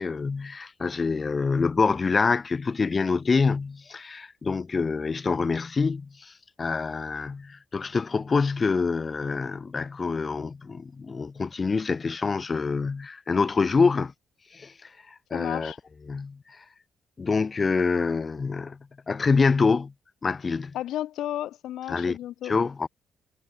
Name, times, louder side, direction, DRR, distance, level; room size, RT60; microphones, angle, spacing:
voice 1, 0.0-6.3 6.6-14.1 14.5-15.7 16.1-16.6 17.2-18.8 19.1-19.9 20.2-20.7 21.9-22.2 22.4-22.9, left 4 dB, 35° left, 0.4 m, -26 dB
voice 2, 15.3-15.8 20.7-22.5, left 12 dB, 80° left, 0.9 m, -33 dB
cardioid pair, 90°, 0 cm